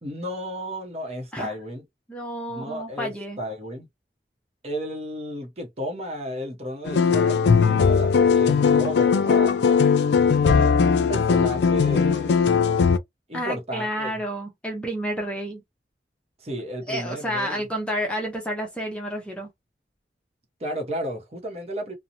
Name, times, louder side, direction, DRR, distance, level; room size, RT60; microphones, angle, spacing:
voice 1, 0.0-1.8 2.5-3.9 4.6-9.9 10.4-12.5 13.3-14.2 16.4-17.7 20.6-22.0, equal, 35° right, 0.8 m, -33 dB
voice 2, 2.1-3.4 13.3-15.6 16.9-19.5, equal, 5° left, 0.6 m, -30 dB
sound 1, 6.8-13.0, left 6 dB, 75° left, 0.4 m, -19 dB
2.8 x 2.0 x 2.5 m
head